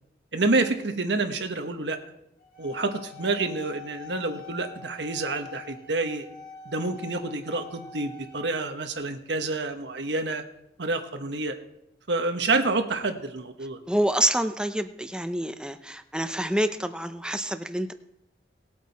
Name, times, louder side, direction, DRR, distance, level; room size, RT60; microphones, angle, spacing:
voice 1, 0.3-2.0 2.6-6.3 6.6-10.4 10.8-11.6 12.1-13.8, right 3 dB, 80° right, 6 dB, 1.3 m, -28 dB
sound 1, 2.4-8.6, left 6 dB, 55° left, 2.5 m, -45 dB
voice 2, 13.9-17.9, right 1 dB, 5° right, 9 dB, 0.6 m, -27 dB
19.0 x 8.4 x 4.2 m, 0.83 s
head